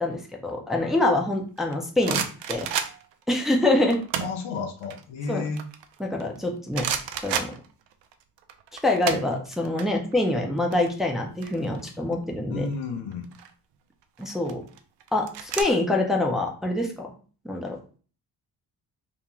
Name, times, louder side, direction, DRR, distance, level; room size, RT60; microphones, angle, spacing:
voice 1, 0.0-2.2 2.5-2.7 3.3-4.0 5.3-5.5 6.0-6.9 7.2-7.5 8.8-12.7 14.2-14.6 15.1-17.1 17.4-17.8, left 2 dB, ahead, 1 dB, 0.6 m, -25 dB
sound 1, 1.6-3.2 3.9-4.4 4.8-6.4 6.7-8.1 8.4-9.8 10.1-10.3 10.6-12.1 13.1-13.5 14.2-15.6, right 9 dB, 65° right, 0.5 m, -31 dB
voice 2, 4.2-5.6 12.5-13.3, left 4 dB, 70° left, 4 dB, 0.7 m, -32 dB
2.5 x 2.1 x 3.0 m, 0.39 s
hypercardioid pair, 45°, 47 cm